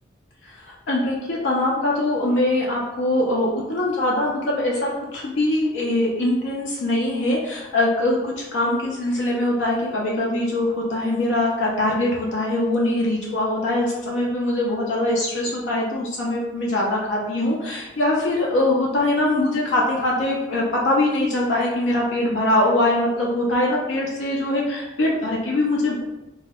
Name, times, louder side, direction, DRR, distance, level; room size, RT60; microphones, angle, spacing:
voice 1, 0.4-26.0, left 1 dB, 80° left, -3 dB, 0.5 m, -22 dB
2.1 x 2.1 x 3.4 m, 0.98 s
head